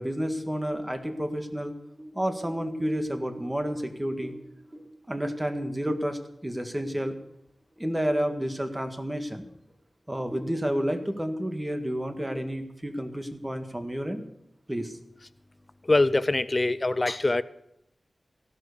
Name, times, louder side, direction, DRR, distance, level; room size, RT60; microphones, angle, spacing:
voice 1, 0.0-1.7 2.1-4.3 5.1-7.2 7.8-9.5 10.1-14.3 14.7-15.0, equal, 15° right, 1.8 m, -30 dB
sound 1, 1.2-6.8 7.1-7.2 7.6-8.1 8.5-8.6 9.3-9.4 9.7-9.8 10.2-11.4, right 1 dB, 30° right, 7.5 m, -46 dB
voice 2, 15.8-17.4, left 2 dB, 35° left, 0.5 m, -23 dB
15.5 x 12.0 x 6.7 m
wide cardioid pair, 95°, 0 cm